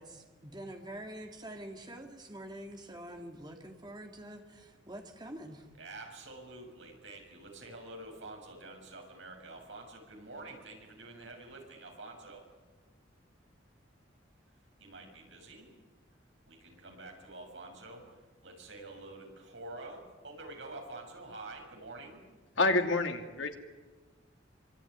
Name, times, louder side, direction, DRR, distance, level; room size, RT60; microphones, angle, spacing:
voice 1, 0.0-5.7, right 1 dB, 20° right, 3 dB, 2.7 m, -46 dB
voice 2, 5.7-12.5 14.8-15.7 16.4-18.1 18.4-22.2, right 2 dB, 70° right, 2 dB, 6.6 m, -47 dB
voice 3, 22.6-23.6, left 2 dB, 75° left, 4 dB, 2.8 m, -28 dB
25.0 x 24.0 x 9.6 m, 1.3 s
head